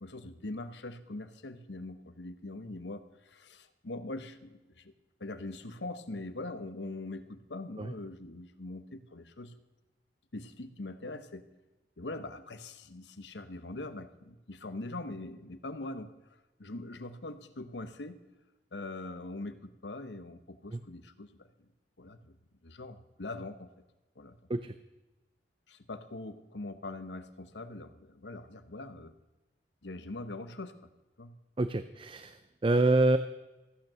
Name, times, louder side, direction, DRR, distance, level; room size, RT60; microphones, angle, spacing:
voice 1, 0.0-4.9 5.2-9.5 10.3-11.4 12.0-16.1 16.6-18.2 18.7-21.7 22.0-22.4 22.6-23.7 24.2-24.4 25.7-29.1 29.8-30.8 31.2-31.3, left 2 dB, 75° left, 10 dB, 1.0 m, -42 dB
voice 2, 31.6-33.2, right 2 dB, 30° right, 11 dB, 0.5 m, -27 dB
15.0 x 9.2 x 7.5 m, 1.1 s
head